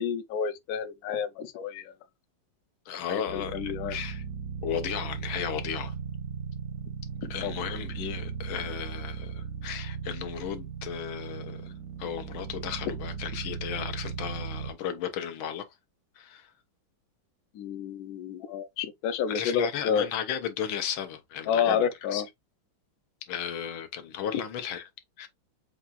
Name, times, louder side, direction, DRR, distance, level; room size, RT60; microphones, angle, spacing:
voice 1, 0.0-1.9 3.1-4.0 7.2-7.5 17.5-20.1 21.5-22.3, left 7 dB, 65° left, 0.9 m, -30 dB
voice 2, 2.9-4.2 4.6-5.9 7.3-11.7 12.0-15.6 16.2-16.5 19.3-21.8 22.1-22.2 23.3-24.8 25.2-25.3, left 9 dB, 90° left, 1.7 m, -34 dB
sound 1, 3.3-14.7, right 6 dB, 65° right, 0.9 m, -37 dB
7.1 x 2.4 x 2.5 m
omnidirectional pair, 2.2 m